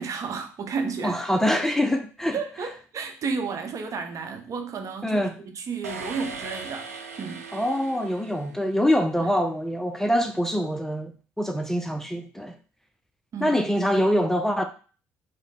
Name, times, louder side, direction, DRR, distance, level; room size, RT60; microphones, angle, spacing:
voice 1, 0.0-1.2 1.5-1.6 2.3-5.2 5.6-6.9 7.2-7.4 9.2-9.3 13.3-13.5, right 5 dB, 45° right, 0.9 m, -32 dB
voice 2, 1.0-2.4 5.0-5.4 7.5-12.6 13.4-14.6, equal, 5° left, 0.5 m, -24 dB
sound 1, 5.8-9.0, right 5 dB, 85° right, 0.5 m, -39 dB
4.8 x 2.2 x 4.1 m
figure-of-eight pair, 50°, 8 cm